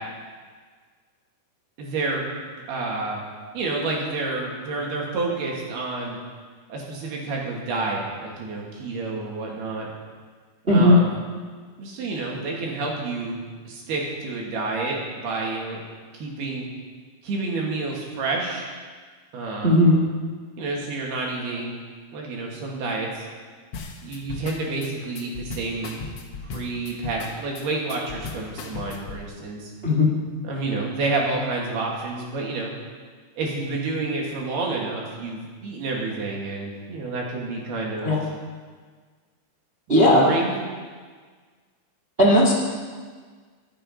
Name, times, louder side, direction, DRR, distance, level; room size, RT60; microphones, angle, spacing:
voice 1, 1.8-2.4 2.7-3.2 3.5-6.2 6.7-9.9 10.7-11.1 11.8-15.8 16.1-16.7 17.2-18.7 19.3-19.8 20.6-21.8 22.1-23.3 24.0-26.0 26.4-29.7 30.4-32.7 33.4-38.2 39.9-40.6, right 3 dB, 65° right, -2 dB, 4.5 m, -29 dB
voice 2, 10.7-11.0 19.6-20.0 29.8-30.1 38.0-38.2 39.9-40.2 42.2-42.5, left 1 dB, 25° right, -3 dB, 1.2 m, -16 dB
sound 1, 23.7-29.2, left 4 dB, 80° left, 1.3 m, -36 dB
24.0 x 8.8 x 5.7 m, 1.5 s
omnidirectional pair, 4.9 m